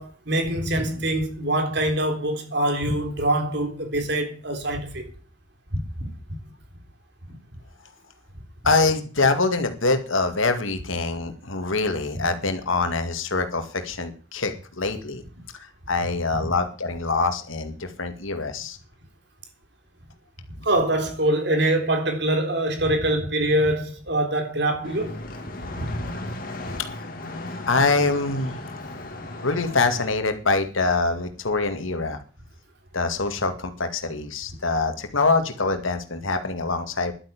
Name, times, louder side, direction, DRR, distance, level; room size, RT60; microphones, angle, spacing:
voice 1, 0.0-5.1 5.7-6.1 20.6-25.2 25.6-26.1, right 1 dB, 55° right, 3.6 m, -24 dB
voice 2, 8.6-15.2 15.6-18.8 27.7-28.6 29.4-32.2 32.9-37.1, left 3 dB, 80° left, 2.2 m, -24 dB
sound 1, 24.8-30.1, left 2 dB, 45° left, 2.4 m, -36 dB
11.5 x 9.1 x 8.5 m
head